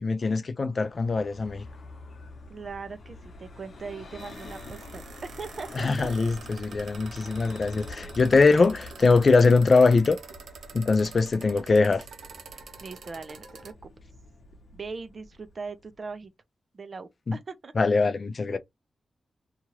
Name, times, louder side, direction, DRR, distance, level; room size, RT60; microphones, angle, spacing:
voice 1, 0.0-1.6 5.7-10.2 10.7-12.0 17.3-17.4 17.8-18.6, left 4 dB, 40° left, 0.4 m, -22 dB
Vehicle, 0.7-16.2, left 2 dB, 60° left, 0.9 m, -46 dB
voice 2, 2.5-6.1 12.8-13.9 14.7-16.3 16.7-17.7, right 4 dB, 40° right, 0.5 m, -40 dB
sound 1, 3.8-13.7, right 5 dB, 90° right, 0.7 m, -47 dB
2.8 x 2.4 x 3.0 m
wide cardioid pair, 150°, 0 cm